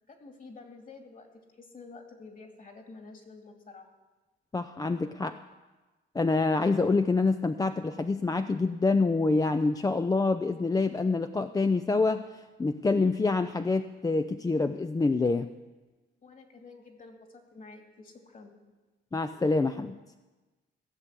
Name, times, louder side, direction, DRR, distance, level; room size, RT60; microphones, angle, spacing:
voice 1, 0.1-1.3 1.6-3.9 16.2-18.5, left 3 dB, 40° left, 3 dB, 2.6 m, -49 dB
voice 2, 4.5-5.4 6.1-12.2 12.6-15.5 19.1-20.0, left 3 dB, 20° left, 9 dB, 0.5 m, -26 dB
16.5 x 6.9 x 8.2 m, 1.2 s
cardioid pair, 90°, 20 cm